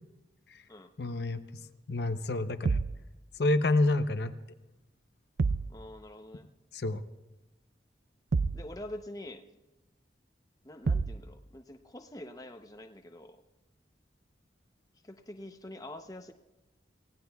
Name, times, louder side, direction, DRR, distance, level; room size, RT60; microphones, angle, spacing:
voice 1, 1.0-1.4 1.9-2.8 3.4-4.3 6.7-7.0, left 2 dB, 65° left, 9 dB, 0.7 m, -28 dB
sound 1, 2.6-3.0 5.4-5.8 8.3-8.7 10.9-11.2, right 4 dB, 65° right, 0.5 m, -28 dB
voice 2, 5.7-6.5 8.5-9.4 10.6-13.4 15.0-16.3, left 1 dB, 20° left, 5 dB, 0.7 m, -45 dB
29.0 x 16.5 x 2.3 m, 1.1 s
head